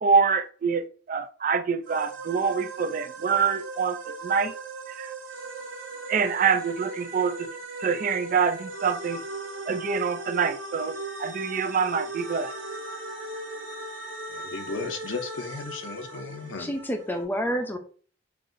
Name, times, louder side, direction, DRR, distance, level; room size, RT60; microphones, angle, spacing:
voice 1, 0.0-4.5 4.9-5.1 6.1-7.5 7.8-9.2 9.7-12.5, right 5 dB, 45° right, 0.4 m, -26 dB
sound 1, 1.8-17.2, right 2 dB, 80° right, 1.1 m, -38 dB
Wind instrument woodwind instrument, 10.9-15.4, right 1 dB, 20° right, 1.1 m, -48 dB
voice 2, 14.3-16.7, left 4 dB, 75° left, 0.7 m, -35 dB
voice 3, 16.6-17.8, equal, 10° left, 0.5 m, -28 dB
5.7 x 2.6 x 2.6 m
head